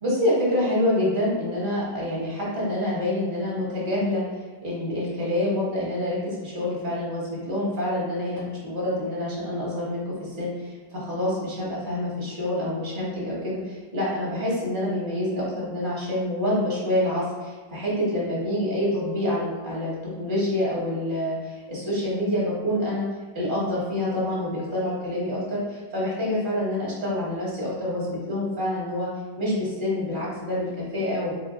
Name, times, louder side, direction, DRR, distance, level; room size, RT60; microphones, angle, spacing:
voice 1, 0.0-4.3 4.6-23.1 23.3-29.1 29.4-31.3, left 1 dB, 30° right, -7 dB, 1.3 m, -27 dB
4.3 x 2.8 x 3.7 m, 1.4 s
omnidirectional pair, 2.1 m